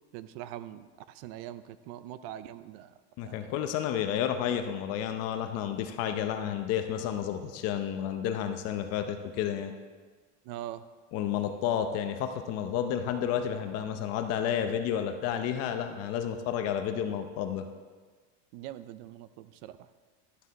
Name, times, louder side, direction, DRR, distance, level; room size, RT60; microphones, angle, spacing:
voice 1, 0.1-3.0 3.2-3.5 10.4-10.8 18.5-19.9, right 12 dB, 55° right, 14 dB, 0.5 m, -43 dB
voice 2, 3.2-9.7 11.1-17.7, left 9 dB, 45° left, 7 dB, 0.7 m, -31 dB
11.0 x 6.5 x 4.1 m, 1.5 s
cardioid pair, 160°, 36 cm